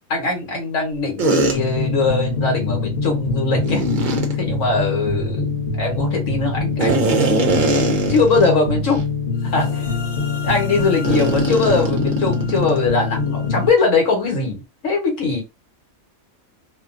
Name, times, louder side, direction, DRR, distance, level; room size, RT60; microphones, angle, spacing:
voice 1, 0.1-3.8 4.4-7.6 8.1-9.1 9.5-9.8 10.4-14.6 14.8-15.4, left 3 dB, 65° left, 1.5 m, -21 dB
sound 1, 1.2-1.6 3.6-4.3 6.8-8.5 8.9-9.0 9.6-9.8 11.0-12.8, right 2 dB, 50° right, 0.6 m, -21 dB
sound 2, 1.5-13.7, left 4 dB, 45° left, 1.2 m, -24 dB
2.7 x 2.4 x 2.5 m
omnidirectional pair, 1.4 m